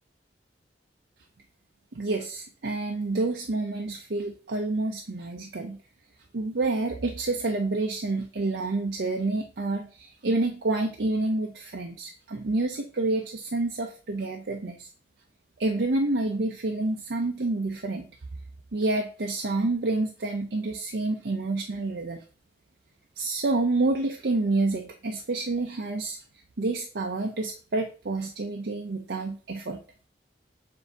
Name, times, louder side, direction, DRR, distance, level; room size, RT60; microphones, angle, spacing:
voice 1, 1.9-5.8 6.3-14.9 15.6-18.1 18.7-22.2 23.2-26.2 26.6-29.8, right 2 dB, 70° right, 2 dB, 0.6 m, -28 dB
7.6 x 2.7 x 4.5 m, 0.37 s
head